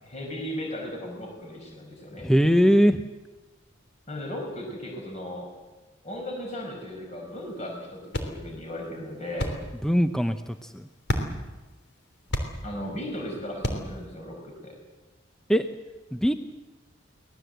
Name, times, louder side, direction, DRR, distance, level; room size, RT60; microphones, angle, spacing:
voice 1, 0.0-2.3 4.1-5.5 6.0-9.5 12.6-14.7, left 1 dB, 35° left, 1 dB, 5.3 m, -36 dB
voice 2, 2.2-3.0 9.8-10.4 15.5-15.6 16.1-16.3, equal, 5° left, 8 dB, 0.7 m, -20 dB
sound 1, 7.3-14.1, left 1 dB, 60° left, 3.3 m, -35 dB
24.5 x 19.0 x 8.0 m, 1.2 s
head